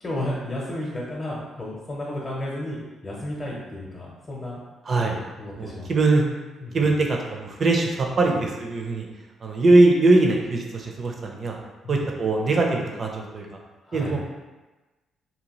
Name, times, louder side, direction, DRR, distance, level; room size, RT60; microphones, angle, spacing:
voice 1, 0.0-4.6 4.9-5.9 6.6-6.9 8.2-8.4 11.8-12.1 13.8-14.2, left 1 dB, 30° left, -5 dB, 0.7 m, -33 dB
voice 2, 4.9-5.2 5.6-6.3 6.7-9.1 9.4-11.6 11.9-13.5 13.9-14.3, right 2 dB, 45° right, 1 dB, 0.5 m, -21 dB
2.7 x 2.3 x 2.9 m, 1.2 s
cardioid pair, 90°, 0 cm